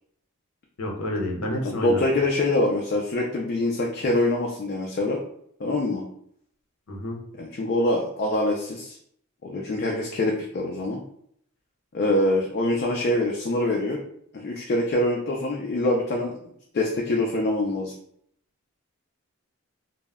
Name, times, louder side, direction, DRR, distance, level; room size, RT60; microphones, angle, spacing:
voice 1, 0.8-2.0 6.9-7.2, left 1 dB, 85° left, 0 dB, 0.6 m, -29 dB
voice 2, 1.6-5.2 5.6-6.0 7.4-9.0 9.4-11.0 11.9-14.0 14.3-17.9, left 1 dB, 45° left, 0 dB, 0.3 m, -25 dB
2.1 x 2.0 x 3.4 m, 0.69 s
head